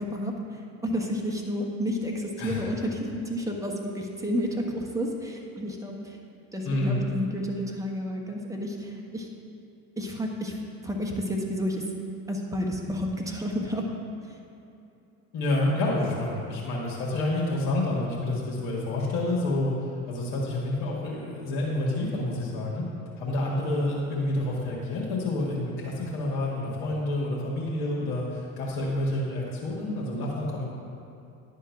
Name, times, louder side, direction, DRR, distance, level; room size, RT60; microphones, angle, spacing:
voice 1, 0.0-6.2 6.5-9.3 10.0-10.6 10.8-11.8 12.3-13.9 14.2-14.4, equal, 5° right, -1 dB, 1.3 m, -31 dB
voice 2, 6.6-7.0 15.3-22.8 23.2-30.6, left 1 dB, 65° left, -4 dB, 1.8 m, -28 dB
10.0 x 3.8 x 5.9 m, 2.7 s
hypercardioid pair, 70°, 43 cm